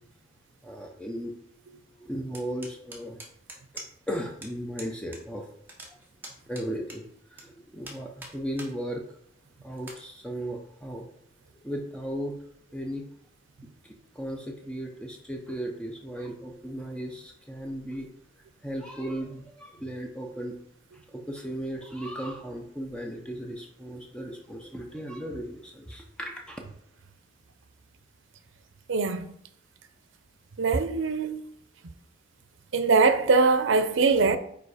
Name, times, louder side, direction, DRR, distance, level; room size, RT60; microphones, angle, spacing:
voice 1, 0.6-1.4 2.0-3.2 4.1-5.5 6.5-7.1 7.3-9.0 9.6-11.1 11.6-12.4 12.7-13.1 14.1-18.1 18.6-20.6 21.1-26.6, equal, 5° left, 0.6 m, -36 dB
sound 1, 2.3-4.1 4.4-4.5 4.8-5.2 5.5-7.4 7.8-8.7 9.2-9.3 9.8-10.0, right 2 dB, 10° right, 1.0 m, -43 dB
voice 2, 28.9-29.3 30.6-31.4 32.7-34.4, right 4 dB, 80° right, 0.6 m, -22 dB
4.9 x 4.5 x 4.9 m
head